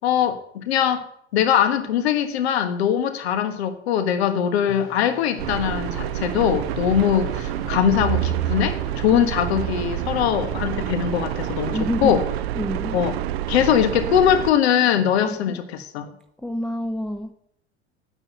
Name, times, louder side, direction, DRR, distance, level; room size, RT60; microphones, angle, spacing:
voice 1, 0.0-1.0 1.3-12.2 12.9-13.2 13.5-16.1, left 9 dB, 65° left, 1.4 m, -21 dB
sound 1, 4.7-12.2, left 5 dB, 40° left, 2.5 m, -42 dB
sound 2, 5.4-14.5, right 13 dB, 60° right, 0.7 m, -27 dB
voice 2, 11.7-12.2 12.6-13.0 15.2-15.4 16.4-17.3, left 1 dB, ahead, 0.8 m, -27 dB
9.8 x 8.8 x 9.3 m
figure-of-eight pair, 70°, 34 cm